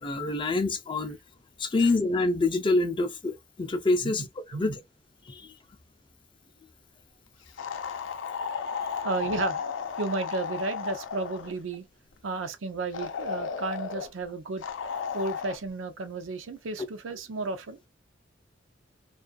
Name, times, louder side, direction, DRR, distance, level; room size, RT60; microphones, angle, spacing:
voice 1, 0.0-1.2 1.6-4.2 4.5-4.8 5.3-5.5, left 2 dB, 25° left, 0.4 m, -26 dB
sound 1, 7.6-11.6 12.9-14.1 14.6-15.6, left 6 dB, 80° left, 0.5 m, -34 dB
voice 2, 9.0-9.6 10.0-11.8 12.2-14.6 15.1-17.8, right 3 dB, 90° right, 0.5 m, -33 dB
2.4 x 2.3 x 2.4 m
head